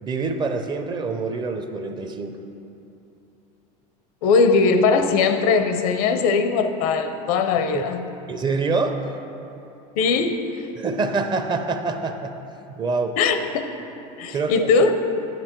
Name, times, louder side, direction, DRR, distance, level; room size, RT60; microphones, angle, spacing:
voice 1, 0.0-2.4 7.7-7.8 8.3-9.0 10.8-12.3 12.7-13.2 14.3-14.7, right 4 dB, 25° right, 6 dB, 0.5 m, -25 dB
voice 2, 4.2-8.0 10.0-10.5 13.2-13.6 14.2-14.9, left 4 dB, 80° left, 8 dB, 0.7 m, -20 dB
9.2 x 7.1 x 4.5 m, 2.8 s
supercardioid pair, 135°, 18 cm